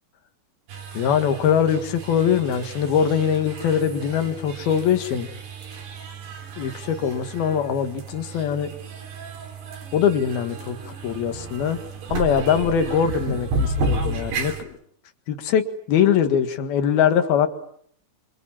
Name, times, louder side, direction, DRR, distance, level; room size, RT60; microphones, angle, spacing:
sound 1, 0.7-14.6, right 2 dB, 60° right, 5.5 m, -32 dB
voice 1, 0.9-5.3 6.6-8.7 9.9-10.8 11.0-11.8 12.1-14.7 15.3-17.5, left 8 dB, 60° left, 8 dB, 3.3 m, -22 dB
27.0 x 26.5 x 7.5 m, 0.65 s
omnidirectional pair, 5.4 m